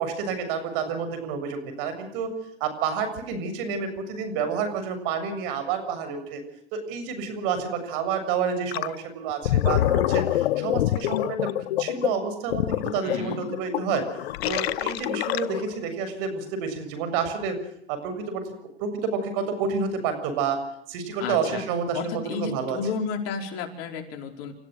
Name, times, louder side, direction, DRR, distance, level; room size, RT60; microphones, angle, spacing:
voice 1, 0.0-2.3 2.6-6.4 6.7-11.5 11.8-14.1 14.4-17.6 17.9-18.4 18.8-20.6 20.9-22.8, right 6 dB, 55° right, 9 dB, 7.1 m, -29 dB
Gurgling, 8.7-8.9 9.3-15.8, left 14 dB, 65° left, 1.0 m, -26 dB
voice 2, 13.0-13.4 21.2-21.6 21.9-24.5, left 5 dB, 45° left, 3 dB, 5.1 m, -32 dB
29.5 x 16.0 x 6.3 m, 0.72 s
hypercardioid pair, 120°, 33 cm